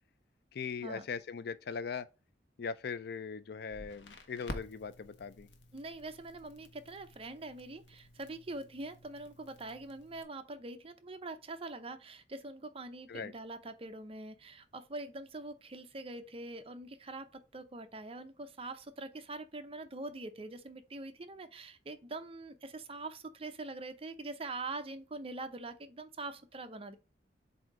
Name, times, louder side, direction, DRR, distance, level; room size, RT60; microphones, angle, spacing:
voice 1, 0.5-2.1 2.6-5.5 13.1-13.3, left 5 dB, 65° left, 0.4 m, -40 dB
Crackle, 3.7-10.2, left 1 dB, 85° left, 1.0 m, -50 dB
voice 2, 5.7-27.0, right 2 dB, 35° right, 0.7 m, -44 dB
7.7 x 2.7 x 4.7 m
head